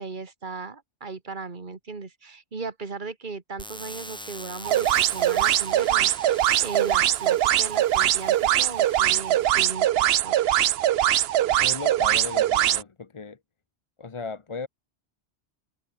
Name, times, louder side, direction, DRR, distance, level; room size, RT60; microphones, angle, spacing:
voice 1, 0.0-10.7, right 4 dB, 45° right, 2.0 m, -37 dB
sound 1, 3.6-9.6, equal, 5° left, 5.4 m, -44 dB
sound 2, 4.6-12.8, right 12 dB, 70° right, 0.8 m, -22 dB
voice 2, 11.5-13.4 14.0-14.7, left 4 dB, 30° left, 0.7 m, -36 dB
omnidirectional pair, 1.2 m